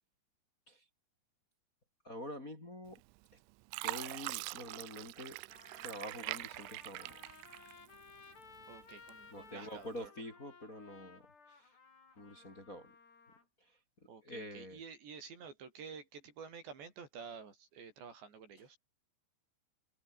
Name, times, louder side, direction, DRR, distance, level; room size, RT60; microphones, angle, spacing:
voice 1, 2.0-3.0 3.8-5.4 5.8-7.2 9.3-11.7 12.2-12.9 13.6-13.8 14.2-14.8, left 1 dB, 20° left, 4.1 m, -47 dB
Fill (with liquid), 3.0-3.3 3.7-8.1 8.5-9.4 9.9-10.1, right 23 dB, 85° right, 3.0 m, -43 dB
Trumpet, 5.5-13.4, left 5 dB, 55° left, 8.7 m, -58 dB
voice 2, 8.7-10.1 14.1-18.8, right 6 dB, 60° right, 6.9 m, -50 dB
omnidirectional pair, 5.7 m